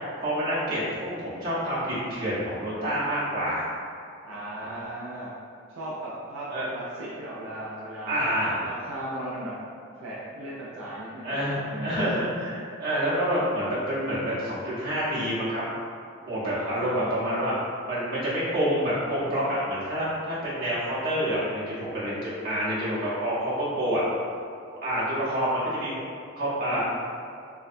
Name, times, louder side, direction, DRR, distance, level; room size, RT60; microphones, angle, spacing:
voice 1, 0.2-3.7 6.5-6.7 8.1-8.6 11.2-15.6 16.2-17.6 17.9-24.0 24.8-25.9 26.4-26.8, equal, 50° right, -9 dB, 0.7 m, -27 dB
voice 2, 4.2-5.3 5.7-6.4 6.7-8.2 8.6-9.7 10.0-12.1 16.5-17.6 26.7-26.8, right 1 dB, 80° right, -7 dB, 0.4 m, -37 dB
2.6 x 2.2 x 2.5 m, 2.2 s
head